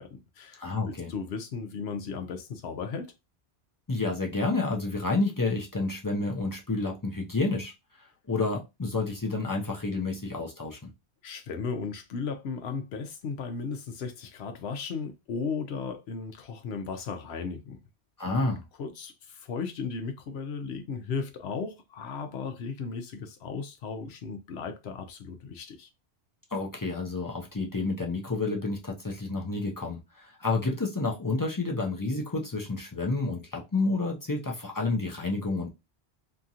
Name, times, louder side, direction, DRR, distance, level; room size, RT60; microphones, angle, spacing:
voice 1, 0.0-3.1 11.2-17.8 18.2-18.5 18.8-25.9, left 5 dB, 75° left, 0.9 m, -36 dB
voice 2, 0.6-1.1 3.9-7.7 8.3-10.9 18.2-18.6 26.5-35.7, left 3 dB, 30° left, 0.4 m, -29 dB
2.9 x 2.4 x 2.7 m
omnidirectional pair, 1.1 m